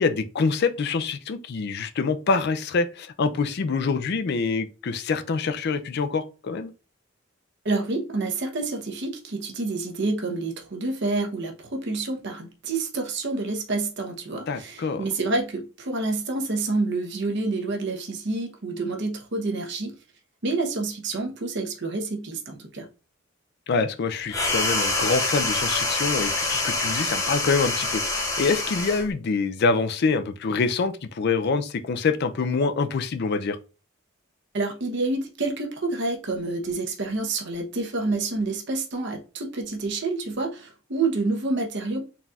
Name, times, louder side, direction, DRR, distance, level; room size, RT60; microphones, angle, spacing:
voice 1, 0.0-6.7 14.5-15.0 23.7-33.6, left 4 dB, 55° left, 0.4 m, -25 dB
voice 2, 7.6-20.0 20.4-22.9 34.5-42.0, right 3 dB, 60° right, 0.9 m, -28 dB
sound 1, 24.3-29.1, left 2 dB, 15° left, 0.8 m, -26 dB
4.0 x 2.4 x 4.0 m
head